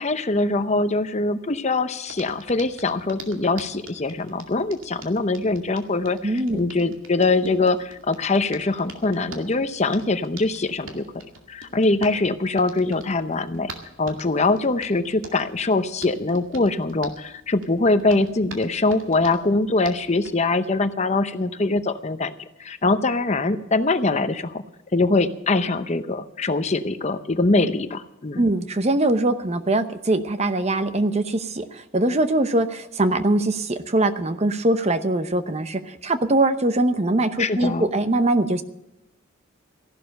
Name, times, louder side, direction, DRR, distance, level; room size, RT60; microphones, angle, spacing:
voice 1, 0.0-13.7 14.0-22.3 22.6-24.6 24.9-28.5 37.4-37.9, left 3 dB, 35° left, 10 dB, 0.8 m, -23 dB
Hands, 2.1-20.4, right 3 dB, 80° right, 2.3 m, -45 dB
voice 2, 6.2-6.6 28.4-38.6, right 2 dB, 30° right, 10 dB, 0.8 m, -22 dB
15.0 x 11.5 x 6.5 m, 0.89 s
head